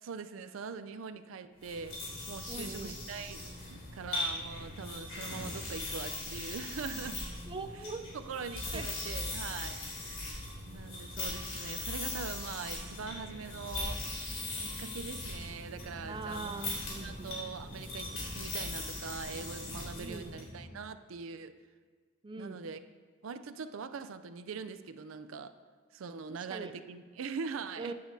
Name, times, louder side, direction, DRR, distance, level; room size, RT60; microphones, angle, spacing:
voice 1, 0.0-7.2 7.8-7.9 8.1-9.8 10.7-14.0 14.6-16.5 17.0-21.6 22.4-22.8 23.2-25.5 25.9-27.9, right 5 dB, 85° right, 10 dB, 0.4 m, -42 dB
sound 1, 1.6-20.5, left 2 dB, 80° left, 3.1 m, -40 dB
voice 2, 2.5-3.0 7.5-8.1 8.7-8.9 16.1-17.4 20.0-20.3 22.2-22.6 26.3-26.7 27.8-27.9, right 3 dB, 25° right, 8 dB, 0.4 m, -42 dB
sound 2, 12.9-20.8, equal, 50° right, 1.4 m, -50 dB
14.0 x 8.4 x 2.7 m, 1.5 s
head